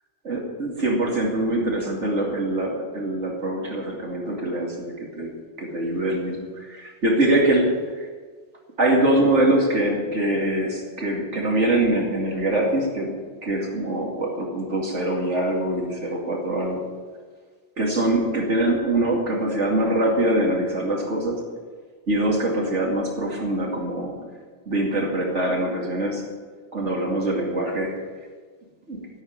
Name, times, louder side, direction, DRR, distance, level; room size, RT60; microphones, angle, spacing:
voice 1, 0.2-5.3 5.6-8.1 8.8-13.1 13.4-16.8 17.8-21.4 22.1-24.2 24.7-26.2 26.7-27.9 28.9-29.0, right 1 dB, 85° right, -1 dB, 2.9 m, -23 dB
16.0 x 8.2 x 9.5 m, 1.5 s
omnidirectional pair, 1.2 m